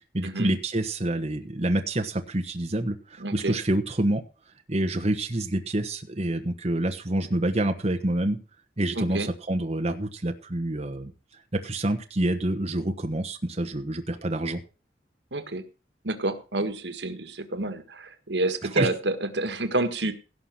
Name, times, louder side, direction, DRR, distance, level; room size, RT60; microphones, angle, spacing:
voice 1, 0.1-4.2 4.7-8.4 8.8-11.1 11.5-14.6 18.7-18.9, right 1 dB, 35° right, 5 dB, 1.2 m, -27 dB
voice 2, 3.2-3.6 9.0-9.3 15.3-15.6 16.0-20.1, right 2 dB, 85° right, 8 dB, 1.6 m, -29 dB
17.0 x 5.9 x 6.0 m, 0.34 s
head